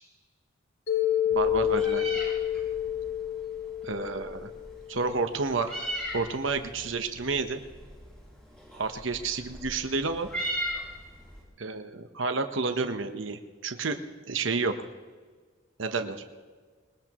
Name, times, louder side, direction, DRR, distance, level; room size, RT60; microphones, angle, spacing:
Mallet percussion, 0.9-5.0, left 11 dB, 75° left, 5.2 m, -29 dB
Meow, 1.3-11.4, equal, 5° left, 5.8 m, -39 dB
voice 1, 1.3-2.2 3.8-4.5 4.9-5.7 6.1-7.6 8.7-10.3 11.6-14.0 14.3-14.8 15.8-16.2, right 4 dB, 70° right, 8 dB, 1.0 m, -30 dB
21.5 x 20.0 x 3.0 m, 1.5 s
head